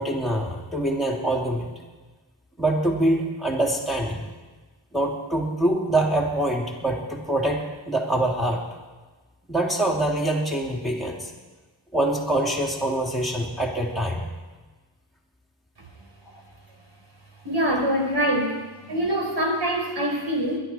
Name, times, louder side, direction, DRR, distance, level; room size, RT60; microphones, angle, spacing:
voice 1, 0.0-1.7 2.6-4.2 4.9-8.6 9.5-11.3 11.9-14.2, right 1 dB, ahead, -3 dB, 3.4 m, -24 dB
voice 2, 17.4-18.6 18.9-20.6, equal, 55° right, 1 dB, 4.5 m, -24 dB
22.0 x 12.0 x 4.7 m, 1.3 s
wide cardioid pair, 105°, 49 cm